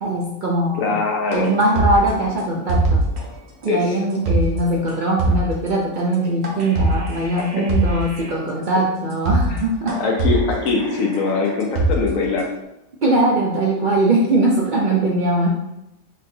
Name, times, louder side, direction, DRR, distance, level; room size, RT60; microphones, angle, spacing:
voice 1, 0.0-1.0 1.3-3.0 3.6-10.0 13.0-15.5, right 2 dB, 75° right, -2 dB, 0.4 m, -20 dB
voice 2, 0.8-1.5 3.7-3.8 10.0-12.5, left 4 dB, 75° left, 1 dB, 1.0 m, -21 dB
sound 1, 1.3-3.3 3.6-3.7 4.1-4.6 4.9-5.0 5.2-5.7 6.4-8.3 8.7-8.8 9.1-9.6 9.9-12.4, right 2 dB, 55° right, 1.1 m, -22 dB
4.1 x 3.2 x 2.6 m, 0.90 s
omnidirectional pair, 1.4 m